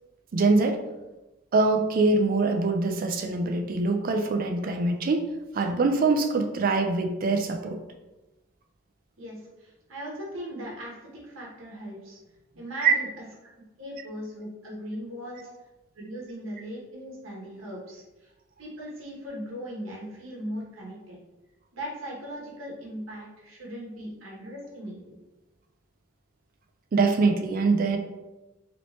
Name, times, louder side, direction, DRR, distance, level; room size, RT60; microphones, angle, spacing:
voice 1, 0.3-0.8 1.5-5.2 5.5-7.8 12.8-12.9 26.9-28.0, right 3 dB, 45° right, 5 dB, 0.4 m, -23 dB
voice 2, 9.2-12.2 12.6-13.2 13.8-15.4 15.9-18.3 18.6-21.2 21.7-25.1, equal, 80° right, -4 dB, 1.0 m, -39 dB
3.0 x 2.8 x 3.0 m, 1.1 s
head